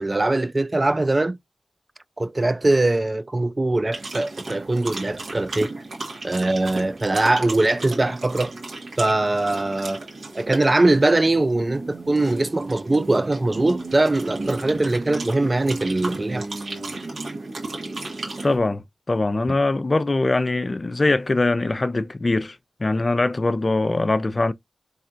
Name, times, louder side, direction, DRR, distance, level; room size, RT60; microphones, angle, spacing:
voice 1, 0.0-1.4 2.2-5.7 6.2-8.5 9.0-10.0 10.3-16.5, right 2 dB, 35° right, 0.3 m, -21 dB
sound 1, 3.9-18.6, right 2 dB, 75° right, 1.7 m, -34 dB
voice 2, 18.4-24.5, left 2 dB, 45° left, 0.5 m, -22 dB
4.2 x 3.4 x 2.4 m
cardioid pair, 50°, 0 cm